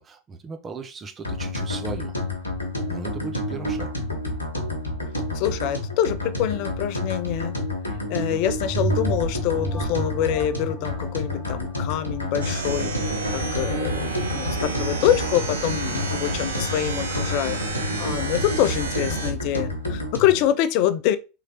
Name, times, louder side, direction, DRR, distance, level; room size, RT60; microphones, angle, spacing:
voice 1, 0.0-2.2 2.9-3.9, right 4 dB, 25° right, 0.6 m, -37 dB
sound 1, 1.2-20.4, left 2 dB, 90° left, 0.8 m, -29 dB
voice 2, 5.3-7.6 8.1-21.2, left 11 dB, 50° left, 0.3 m, -25 dB
sound 2, 8.7-13.6 14.1-14.2, right 2 dB, 20° left, 0.9 m, -32 dB
sound 3, 12.4-19.3, right 3 dB, 80° right, 0.7 m, -30 dB
3.7 x 3.2 x 2.9 m
figure-of-eight pair, 85°, 0 cm